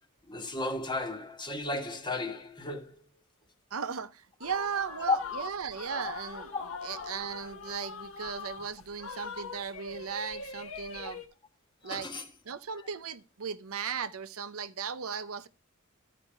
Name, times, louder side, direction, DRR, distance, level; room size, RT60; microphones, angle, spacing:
voice 1, 0.3-3.0 5.0-5.2 5.9-6.0 6.5-7.2 11.0-11.1 11.8-12.2, left 3 dB, 20° left, 1.2 m, -34 dB
voice 2, 3.7-6.5 6.8-11.2 11.8-12.1 12.4-15.5, right 6 dB, 90° right, 0.7 m, -37 dB
sound 1, 4.4-11.3, left 4 dB, 75° left, 1.1 m, -42 dB
12.5 x 5.1 x 4.4 m
head